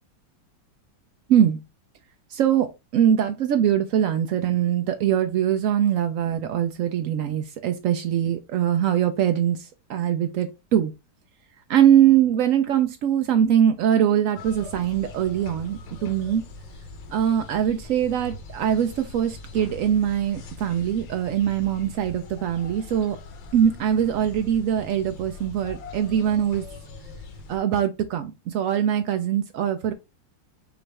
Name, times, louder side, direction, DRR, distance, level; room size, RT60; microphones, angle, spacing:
voice 1, 1.3-1.6 2.3-10.9 11.7-16.4 17.1-23.2 23.5-26.6 27.5-29.9, right 9 dB, 85° right, 0.7 m, -22 dB
sound 1, 14.3-27.6, left 3 dB, 90° left, 1.6 m, -41 dB
5.9 x 2.5 x 3.3 m
omnidirectional pair, 2.0 m